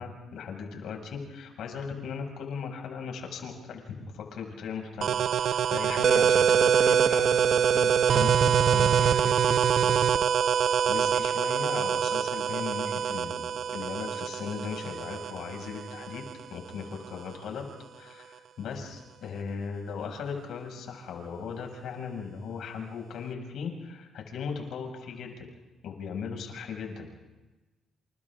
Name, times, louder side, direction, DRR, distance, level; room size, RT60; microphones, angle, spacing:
voice 1, 0.0-10.1 10.5-16.2 16.5-17.6 17.9-25.5 25.8-27.2, left 6 dB, 75° left, 2 dB, 6.4 m, -38 dB
sound 1, 5.0-16.4, right 8 dB, 65° right, 0.6 m, -24 dB
30.0 x 29.0 x 3.8 m, 1.1 s
cardioid pair, 90°, 0 cm